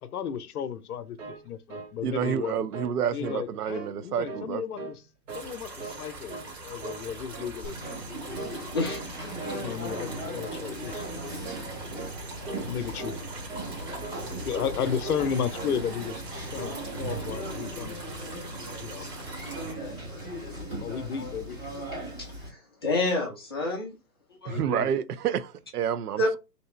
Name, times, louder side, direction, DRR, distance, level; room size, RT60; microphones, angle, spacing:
voice 1, 0.0-2.7 3.1-4.8 5.3-8.0 9.5-11.4 12.7-13.2 14.4-16.2 16.5-18.0 18.8-19.1 20.8-21.6 24.4-24.9, left 8 dB, 65° left, 0.7 m, -34 dB
sound 1, 0.9-2.5 2.7-3.0 3.2-3.9 4.2-5.0 5.3-6.0 6.3-6.5 6.8-7.6 7.8-8.1 8.3-8.6 8.9-9.6 9.9-10.1 10.4-10.6 10.9-11.2 11.4-11.7 11.9-12.2 12.5-12.7 13.0-13.2 13.5-13.7 14.0-14.2 14.5-14.8 15.0-15.8 16.0-16.3 16.5-16.8 17.1-17.3, right 3 dB, 50° right, 1.0 m, -40 dB
voice 2, 2.0-4.6 24.4-26.4, right 8 dB, 70° right, 0.5 m, -29 dB
sound 2, 5.3-19.7, right 2 dB, 30° right, 2.1 m, -42 dB
Conversation, 7.6-22.5, right 1 dB, 10° right, 0.7 m, -38 dB
voice 3, 8.7-9.0 22.2-24.0 24.4-24.6 26.2-26.3, left 2 dB, 15° left, 0.4 m, -28 dB
3.3 x 2.9 x 3.1 m
hypercardioid pair, 135°, 49 cm